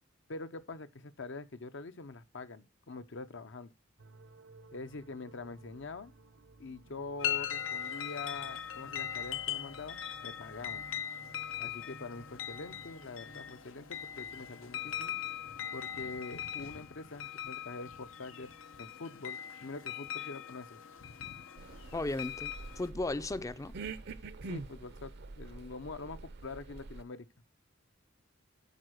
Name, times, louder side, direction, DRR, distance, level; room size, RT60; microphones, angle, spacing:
voice 1, 0.3-3.7 4.7-6.1 6.6-10.9 11.6-15.2 15.7-18.5 18.8-20.8 24.5-27.3, left 3 dB, 65° left, 0.8 m, -44 dB
sound 1, 4.0-15.6, right 2 dB, 80° right, 0.9 m, -57 dB
sound 2, 7.2-22.9, left 10 dB, 90° left, 0.9 m, -40 dB
sound 3, 21.6-27.0, right 3 dB, 55° right, 0.6 m, -45 dB
voice 2, 21.9-23.7, left 2 dB, 15° left, 0.4 m, -35 dB
9.3 x 4.5 x 6.3 m
head